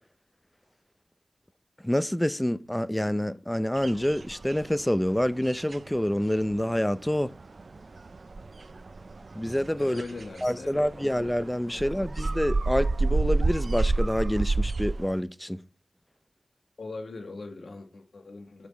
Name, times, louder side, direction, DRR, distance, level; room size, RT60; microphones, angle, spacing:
voice 1, 1.8-7.3 9.3-10.0 10.4-15.6, equal, 10° left, 0.6 m, -27 dB
sound 1, 3.8-4.9 5.2-15.2, right 3 dB, 60° right, 0.5 m, -30 dB
voice 2, 9.8-11.3 11.7-12.1 16.8-18.7, left 3 dB, 80° left, 1.9 m, -41 dB
8.3 x 6.6 x 7.2 m
wide cardioid pair, 70°, 0 cm